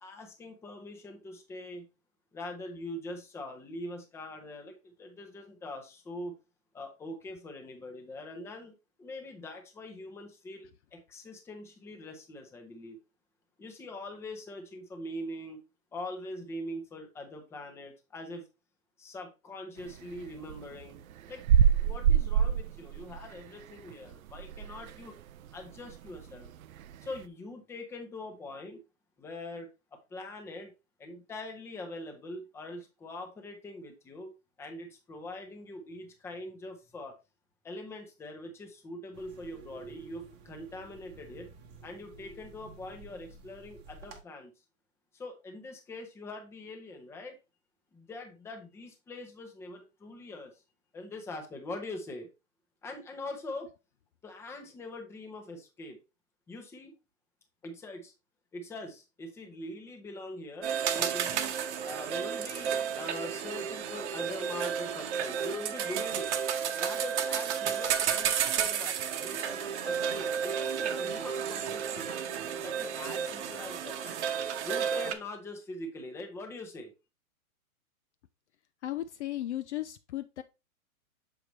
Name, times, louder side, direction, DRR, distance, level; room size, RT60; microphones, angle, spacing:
voice 1, 0.0-1.9 2.3-6.3 6.7-13.0 13.6-15.6 15.9-18.5 19.0-21.0 21.3-21.4 21.8-25.2 25.5-26.5 27.0-28.8 29.2-30.7 31.0-34.3 34.6-37.1 37.6-41.5 41.8-44.5 45.1-47.4 47.9-50.6 50.9-52.3 52.8-53.7 54.2-56.0 56.5-56.9 57.6-58.1 58.5-61.5 61.8-66.4 66.7-72.3 72.6-74.2 74.6-76.9, left 1 dB, 5° left, 0.7 m, -43 dB
sound 1, 19.8-25.1 25.5-25.6 25.8-27.2, right 8 dB, 70° right, 0.6 m, -26 dB
sound 2, 39.1-44.2, right 4 dB, 25° right, 1.0 m, -51 dB
sound 3, 60.6-75.1, right 8 dB, 50° right, 1.0 m, -32 dB
voice 2, 78.8-80.4, left 13 dB, 50° left, 0.5 m, -35 dB
6.7 x 4.7 x 3.1 m
hypercardioid pair, 140°, 43 cm